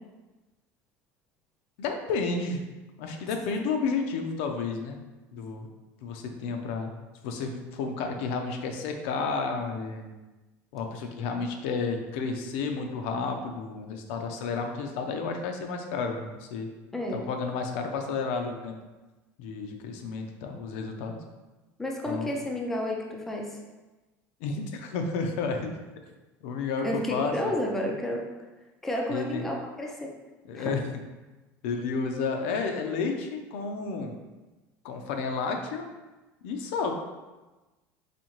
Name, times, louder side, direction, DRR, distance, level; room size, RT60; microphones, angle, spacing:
voice 1, 1.8-2.6 3.0-5.0 5.3-5.7 6.0-6.9 7.2-10.1 10.7-16.7 17.1-18.7 19.4-21.2 22.1-22.3 24.4-25.7 26.4-27.3 29.1-29.5 30.5-30.8 31.6-34.1 34.8-35.9 36.4-36.9, left 4 dB, 80° left, 4 dB, 0.5 m, -31 dB
voice 2, 16.9-17.3 21.8-23.6 26.8-28.2 28.8-30.1 30.5-30.7, left 1 dB, 5° left, 0 dB, 0.3 m, -31 dB
4.2 x 2.7 x 3.0 m, 1.1 s
cardioid pair, 170°, 7 cm